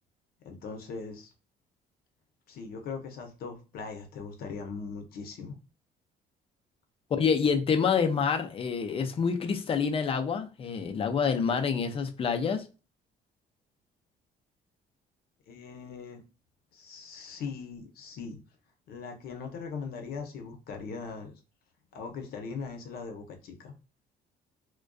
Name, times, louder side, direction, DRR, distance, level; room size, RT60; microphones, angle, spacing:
voice 1, 0.4-1.3 2.5-5.6 15.5-16.2 16.7-18.4 18.9-21.3 21.9-23.8, left 5 dB, 65° left, 0.7 m, -40 dB
voice 2, 7.1-12.6, left 6 dB, 35° left, 0.4 m, -27 dB
2.5 x 2.2 x 2.2 m
cardioid pair, 110°, 17 cm